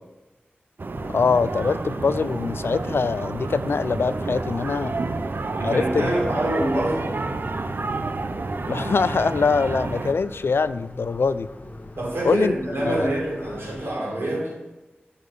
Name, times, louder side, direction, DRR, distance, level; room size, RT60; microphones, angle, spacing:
sound 1, 0.8-10.1, right 3 dB, 60° right, 0.6 m, -30 dB
sound 2, 0.9-13.9, left 1 dB, 45° left, 1.0 m, -41 dB
voice 1, 1.1-4.9 5.6-6.1 8.6-11.5 12.2-12.5 12.8-13.1, left 4 dB, 75° left, 15 dB, 0.4 m, -23 dB
voice 2, 5.5-7.1 12.0-14.5, right 1 dB, 80° right, -3 dB, 3.7 m, -26 dB
9.6 x 6.8 x 5.2 m, 1.1 s
wide cardioid pair, 75°, 4 cm